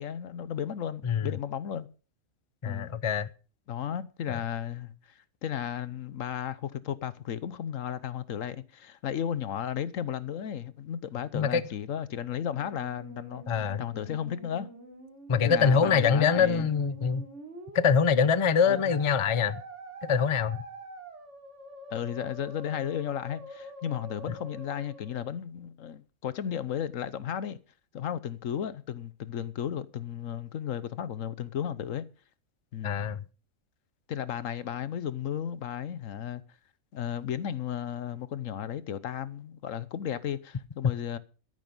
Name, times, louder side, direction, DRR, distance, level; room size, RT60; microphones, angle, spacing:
voice 1, 0.0-1.9 2.6-2.9 3.7-14.7 15.4-16.7 18.7-19.0 21.9-27.6 27.9-32.0 32.7-33.0 34.1-36.4 36.9-41.2, left 9 dB, 70° left, 1.2 m, -34 dB
voice 2, 2.6-3.3 4.3-4.4 11.3-11.6 13.5-13.8 15.3-17.2 17.7-19.6 20.1-20.6 32.8-33.2 40.8-40.9, left 6 dB, 35° left, 0.5 m, -24 dB
Musical instrument, 12.2-25.2, right 2 dB, 55° right, 3.7 m, -45 dB
13.0 x 10.5 x 5.3 m
omnidirectional pair, 1.4 m